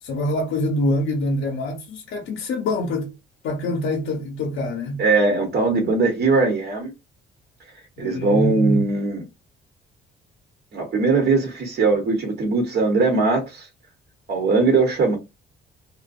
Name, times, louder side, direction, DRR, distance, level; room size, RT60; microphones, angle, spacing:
voice 1, 0.0-3.1 3.4-5.0 8.0-8.8, left 1 dB, 75° left, 0.6 m, -25 dB
voice 2, 5.0-6.9 8.0-9.2 10.7-13.7 14.3-15.2, right 3 dB, 60° right, 1.0 m, -20 dB
2.6 x 2.1 x 2.4 m
cardioid pair, 90°, 20 cm